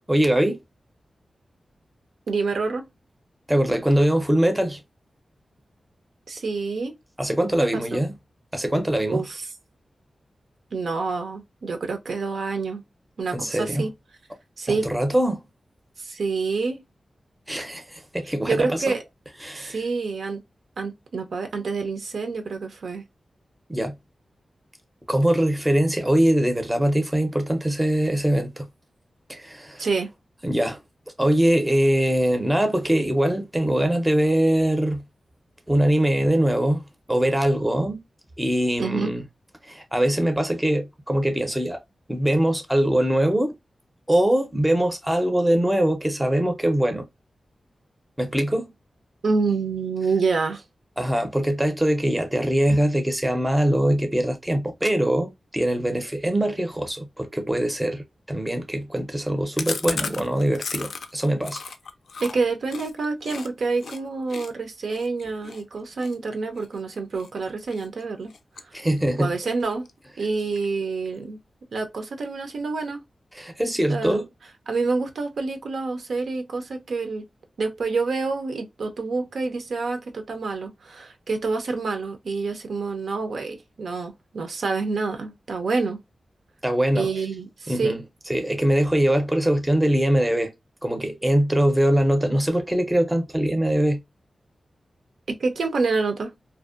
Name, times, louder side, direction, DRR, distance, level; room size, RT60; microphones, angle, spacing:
voice 1, 0.1-0.6 3.5-4.8 7.2-8.1 8.5-9.2 13.3-13.8 14.7-15.4 17.5-18.9 19.4-19.8 23.7-24.0 25.1-28.7 29.3-29.9 30.4-30.8 31.2-35.0 35.7-38.0 38.4-39.2 39.6-41.8 42.1-43.5 44.1-47.1 48.2-48.7 51.0-61.6 68.7-69.3 73.3-74.3 86.6-87.1 87.7-88.0 88.3-90.5 90.8-94.0, right 1 dB, 10° right, 0.5 m, -22 dB
voice 2, 2.3-2.8 6.3-6.9 7.6-8.0 9.1-9.4 10.7-12.8 13.2-13.9 14.6-14.9 16.0-16.8 18.5-19.0 19.5-20.4 20.8-23.0 29.8-30.1 38.8-39.1 49.2-50.6 62.2-68.3 68.6-68.7 69.2-69.9 70.2-71.4 71.7-73.0 73.9-74.2 74.7-77.3 77.6-86.0 86.9-88.0 95.3-96.3, right 4 dB, 75° right, 0.5 m, -27 dB
Chewing mastication, 59.6-63.5 63.8-64.0 64.3-67.3 67.7-68.0 68.3-69.2 69.5-69.6 69.9-70.0 70.3-70.8, left 5 dB, 80° left, 0.3 m, -35 dB
2.5 x 2.1 x 2.3 m
wide cardioid pair, 135°, 0 cm